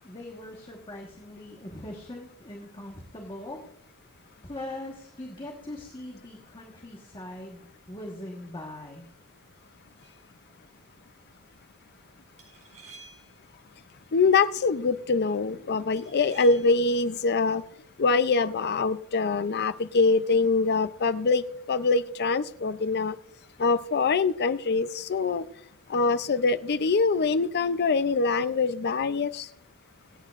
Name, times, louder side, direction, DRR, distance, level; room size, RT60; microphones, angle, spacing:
voice 1, 0.0-3.6 4.4-7.6 7.9-9.1, left 1 dB, 25° left, 0 dB, 1.3 m, -41 dB
sound 1, 10.0-10.3 12.4-13.5 16.0-16.9, right 3 dB, 35° right, 4.8 m, -51 dB
voice 2, 14.1-17.6 18.0-23.2 23.6-25.4 25.9-29.5, left 4 dB, 50° left, 14 dB, 0.5 m, -24 dB
25.5 x 8.7 x 2.5 m, 0.68 s
head